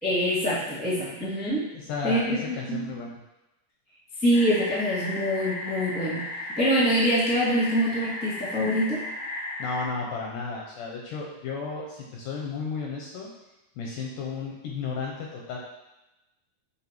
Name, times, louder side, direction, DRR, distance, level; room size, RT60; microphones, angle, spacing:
voice 1, 0.0-1.7 2.0-2.9 4.2-6.2 6.6-9.0, equal, 5° left, -8 dB, 1.3 m, -25 dB
voice 2, 1.7-3.1 9.6-13.3 13.8-15.6, left 4 dB, 75° left, -2 dB, 2.1 m, -33 dB
sound 1, 4.3-9.9, left 2 dB, 35° left, 0.7 m, -35 dB
11.0 x 3.6 x 3.0 m, 0.98 s
omnidirectional pair, 4.2 m